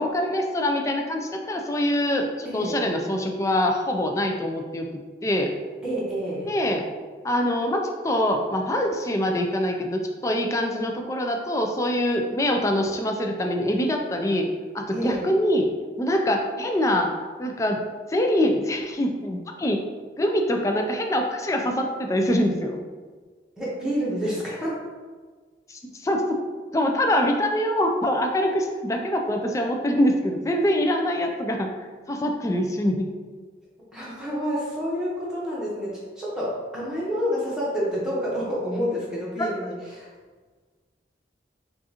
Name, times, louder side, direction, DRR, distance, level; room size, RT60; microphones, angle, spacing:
voice 1, 0.0-4.9 5.2-5.5 6.5-6.8 7.2-14.5 14.7-15.7 16.0-17.1 17.4-17.8 18.1-19.8 20.2-22.8 25.7-26.4 26.7-31.7 32.1-33.1 39.4-39.5, left 1 dB, 15° left, 3 dB, 0.3 m, -24 dB
voice 2, 2.4-2.8 5.8-6.5 14.9-15.3 23.6-24.8 33.9-40.1, equal, 5° right, -7 dB, 1.0 m, -28 dB
5.0 x 2.4 x 2.8 m, 1.4 s
head